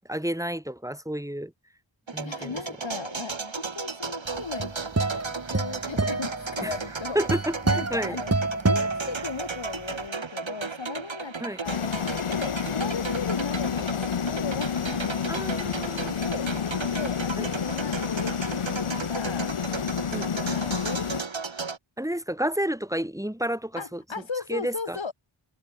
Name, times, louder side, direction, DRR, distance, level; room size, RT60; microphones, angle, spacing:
voice 1, 0.0-1.5 2.1-2.6 6.6-6.7 7.1-8.2 11.4-11.6 15.3-16.1 17.4-17.5 20.1-20.3 22.0-24.0 24.5-25.1, right 1 dB, 5° right, 6.9 m, -30 dB
sound 1, 2.1-21.8, right 4 dB, 65° right, 4.8 m, -35 dB
voice 2, 2.2-5.1 5.5-7.2 7.6-8.3 8.7-11.8 12.3-15.5 16.2-21.1 23.8-25.1, left 5 dB, 65° left, 3.4 m, -36 dB
sound 2, 4.4-9.8, right 3 dB, 30° right, 2.0 m, -28 dB
sound 3, 11.6-21.2, left 7 dB, 85° left, 1.5 m, -29 dB
cardioid pair, 45°, 49 cm